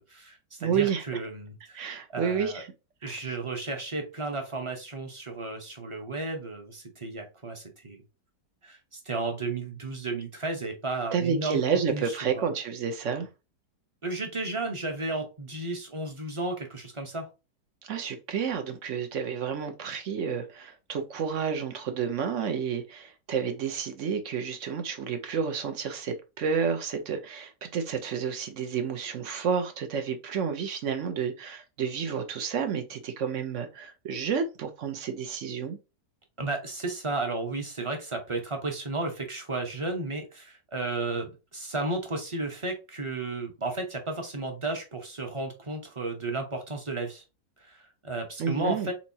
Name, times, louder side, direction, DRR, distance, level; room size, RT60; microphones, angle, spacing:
voice 1, 0.1-1.8 2.1-2.6 3.0-8.0 8.6-11.6 11.9-12.5 14.0-17.3 36.4-47.2 47.6-48.9, right 2 dB, 25° right, 0.9 m, -33 dB
voice 2, 0.6-1.0 1.7-2.7 3.0-3.3 11.1-13.3 17.8-35.8 48.4-48.9, right 6 dB, 55° right, 0.9 m, -30 dB
4.5 x 4.1 x 2.8 m
omnidirectional pair, 1.8 m